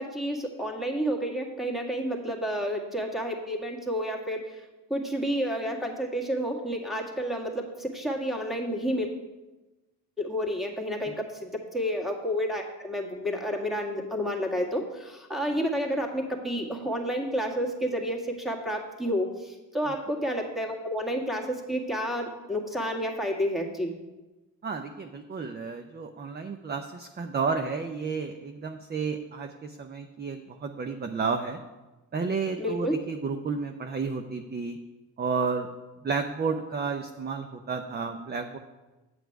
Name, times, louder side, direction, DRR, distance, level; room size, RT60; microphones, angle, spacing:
voice 1, 0.0-4.5 4.9-9.1 10.2-23.9 32.6-33.0, equal, ahead, 0 dB, 1.9 m, -30 dB
voice 2, 24.6-31.6 32.1-34.8 35.2-35.7 36.0-38.6, right 5 dB, 25° right, 6 dB, 0.7 m, -31 dB
7.9 x 7.9 x 4.7 m, 1.1 s
hypercardioid pair, 65°, 42 cm